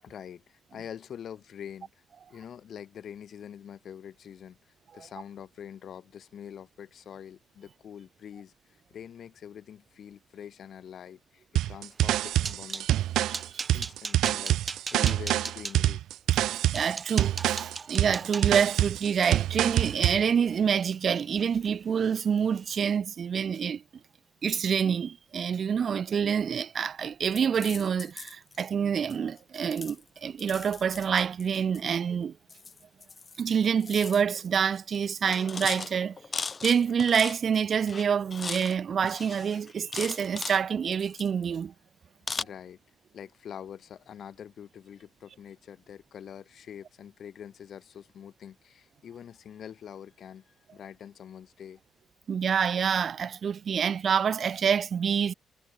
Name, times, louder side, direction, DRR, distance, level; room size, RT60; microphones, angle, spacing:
voice 1, 0.0-1.9 2.3-4.6 4.9-8.5 8.9-12.9 13.7-16.0 42.3-42.8 43.1-51.8, left 9 dB, 60° left, 7.5 m, -45 dB
sound 1, 11.6-20.2, right 13 dB, 85° right, 1.2 m, -26 dB
sound 2, 12.0-12.9 13.3-15.8 16.4-16.5 16.7-20.9 21.3-21.7 22.0-22.2 22.6-22.8, right 4 dB, 30° right, 6.5 m, -39 dB
voice 2, 16.7-23.8 24.4-32.4 33.4-36.2 36.6-41.7 52.3-55.3, right 7 dB, 50° right, 0.9 m, -27 dB
sound 3, 27.3-28.7 29.1-29.4 29.7-31.8 32.5-33.4 33.7-34.5 34.8-35.0 35.3-37.6 37.9-38.8 39.0-40.6 40.9-41.6 42.3-42.4, left 4 dB, 35° left, 1.2 m, -38 dB
cardioid pair, 90°, 0 cm